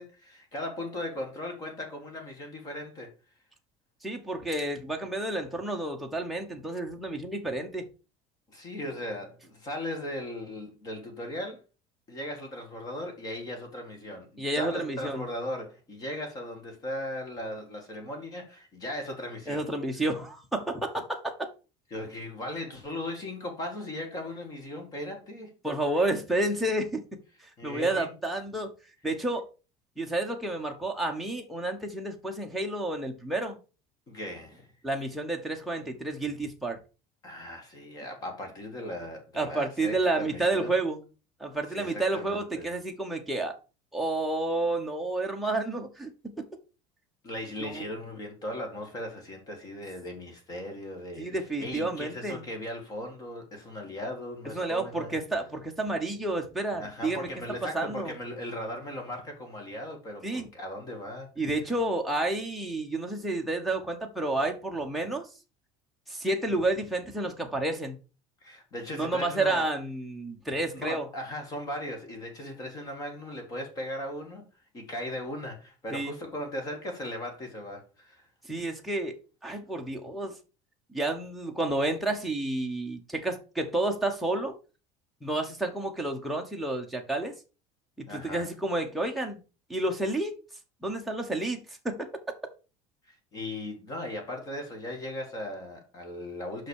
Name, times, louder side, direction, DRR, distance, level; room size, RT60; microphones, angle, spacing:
voice 1, 0.0-3.1 8.5-11.6 12.1-19.6 21.9-25.5 27.6-28.1 34.1-34.7 37.2-40.8 41.7-42.7 47.2-55.2 56.8-61.3 68.4-69.7 70.8-74.5 74.7-78.3 88.1-88.5 93.1-96.7, left 1 dB, 25° left, 1.9 m, -38 dB
voice 2, 4.0-7.9 14.4-15.2 19.5-21.2 25.6-27.0 27.6-28.7 29.0-29.5 30.0-33.6 34.8-36.8 39.4-41.0 41.4-43.6 43.9-46.4 47.6-47.8 51.2-52.4 54.5-57.3 57.7-58.1 60.2-60.5 61.4-65.3 66.1-68.0 68.9-71.1 75.9-76.1 78.5-79.1 79.4-80.4 80.9-84.5 85.2-87.3 88.0-89.4 89.7-90.4 90.8-91.6 91.8-92.1, right 2 dB, ahead, 1.1 m, -30 dB
5.8 x 5.7 x 6.4 m
cardioid pair, 180°, 15 cm